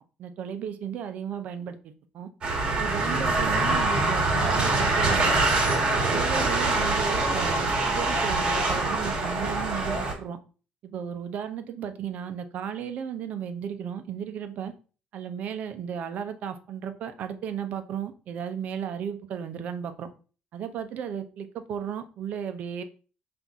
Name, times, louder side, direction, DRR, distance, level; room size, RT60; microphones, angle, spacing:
voice 1, 0.2-2.3 2.8-5.4 5.9-10.4 10.8-14.7 15.1-20.1 20.5-22.8, right 8 dB, 50° right, 9 dB, 0.5 m, -35 dB
sound 1, 2.4-10.1, right 2 dB, 30° right, 1.3 m, -24 dB
5.4 x 2.5 x 3.5 m, 0.37 s
cardioid pair, 150°, 3 cm